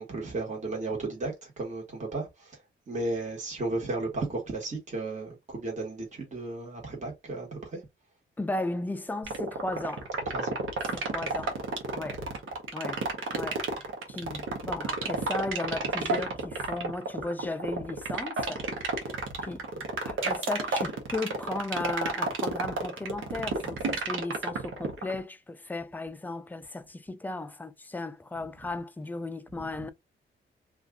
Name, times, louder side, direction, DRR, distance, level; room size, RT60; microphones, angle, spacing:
voice 1, 0.0-2.6 2.9-7.8 10.2-10.6 29.5-29.9, right 2 dB, 35° right, 1.4 m, -34 dB
voice 2, 8.4-10.1 10.9-11.6 11.9-12.3 12.7-13.1 13.3-13.7 14.1-18.7 19.4-19.7 20.0-29.9, left 2 dB, 10° left, 0.4 m, -35 dB
sound 1, 9.2-25.2, right 4 dB, 80° right, 0.9 m, -30 dB
2.6 x 2.4 x 3.6 m
cardioid pair, 90°, 20 cm